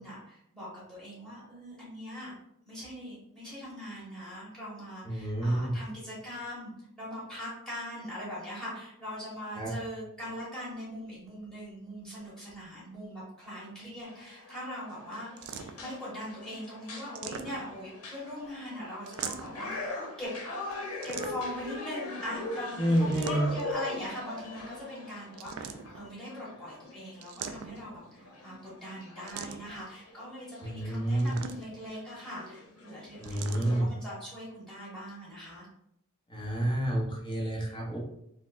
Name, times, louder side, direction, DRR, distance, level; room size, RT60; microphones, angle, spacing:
voice 1, 0.0-2.3 2.6-20.3 21.0-35.6, left 1 dB, 5° left, -8 dB, 1.5 m, -41 dB
voice 2, 5.0-5.8 9.5-9.7 22.8-23.5 30.6-31.3 33.2-33.9 36.3-38.0, right 1 dB, 20° left, -3 dB, 0.8 m, -29 dB
sound 1, 14.0-33.8, left 2 dB, 85° left, 0.8 m, -42 dB
sound 2, 15.4-16.0 17.0-17.9 19.1-19.7 21.0-21.7 23.0-23.7 25.3-26.1 27.2-28.0 29.3-29.8 31.2-31.9 33.2-33.7, right 7 dB, 80° right, 0.3 m, -41 dB
4.1 x 2.1 x 2.5 m, 0.76 s
head